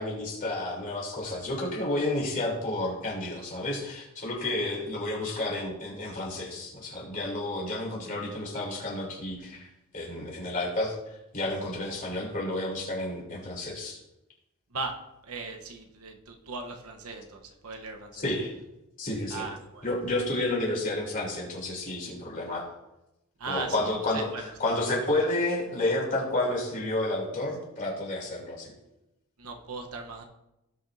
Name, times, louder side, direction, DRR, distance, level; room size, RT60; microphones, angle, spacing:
voice 1, 0.0-9.7 9.9-11.0 11.3-14.0 18.1-18.5 19.0-19.4 19.8-22.7 23.5-28.7, left 2 dB, 40° left, -3 dB, 3.3 m, -31 dB
voice 2, 15.2-18.2 19.3-19.9 20.3-20.4 23.4-24.4 29.4-30.2, right 3 dB, 80° right, 3 dB, 1.0 m, -38 dB
17.5 x 6.0 x 2.6 m, 0.91 s
head